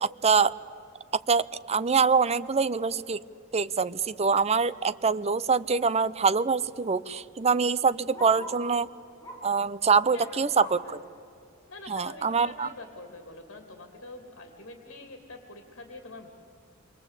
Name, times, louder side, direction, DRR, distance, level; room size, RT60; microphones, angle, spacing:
voice 1, 0.0-0.5 1.3-3.2 3.5-8.9 9.4-11.0 11.9-12.7, right 5 dB, 30° right, 16 dB, 0.6 m, -24 dB
Bark, 6.7-8.7 9.2-9.6 10.0-11.0 11.5-11.6 11.9-12.0 12.7-12.8, equal, 20° left, 5.6 m, -45 dB
voice 2, 10.1-11.0 11.7-16.3, left 2 dB, 65° left, 4 dB, 2.8 m, -45 dB
27.5 x 23.5 x 8.3 m, 2.5 s
head